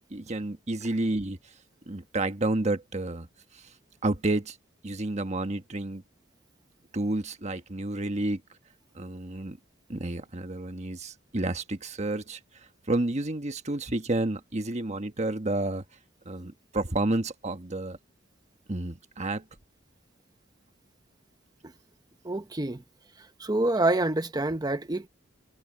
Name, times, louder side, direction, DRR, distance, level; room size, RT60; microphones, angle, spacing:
voice 1, 0.0-1.4 1.9-3.3 3.5-3.6 4.0-4.6 4.8-6.0 6.9-8.4 8.9-9.6 9.9-12.4 12.9-15.8 16.2-18.0 18.7-19.4, right 2 dB, 35° right, 1.4 m, -30 dB
voice 2, 22.2-22.8 23.4-25.1, right 2 dB, 20° right, 0.9 m, -27 dB
head